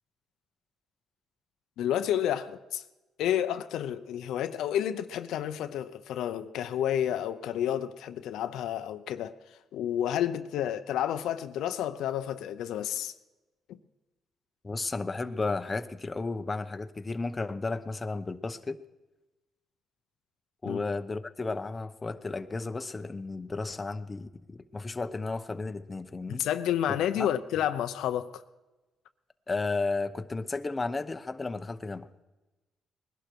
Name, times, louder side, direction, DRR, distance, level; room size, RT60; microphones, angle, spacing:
voice 1, 1.8-2.8 3.2-9.4 9.7-13.1 20.6-20.9 26.3-28.4, left 10 dB, 85° left, 0.7 m, -30 dB
voice 2, 14.6-18.8 20.6-26.4 27.2-27.3 29.5-32.1, left 3 dB, 25° left, 0.9 m, -33 dB
20.5 x 11.5 x 4.6 m
cardioid pair, 90°, 0 cm